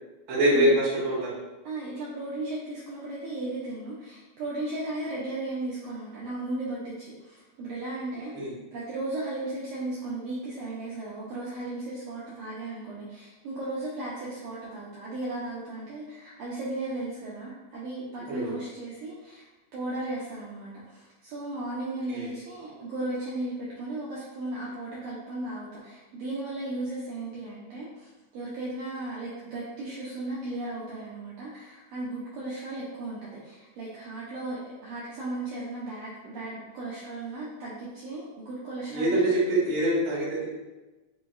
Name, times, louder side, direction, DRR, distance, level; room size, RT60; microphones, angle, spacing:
voice 1, 0.3-1.3 8.3-8.5 18.3-18.6 22.1-22.3 38.9-40.5, right 1 dB, 55° right, -6 dB, 1.6 m, -24 dB
voice 2, 1.6-8.3 8.7-39.2, right 2 dB, 75° right, -7 dB, 1.7 m, -36 dB
5.2 x 2.7 x 2.3 m, 1.1 s
omnidirectional pair, 3.4 m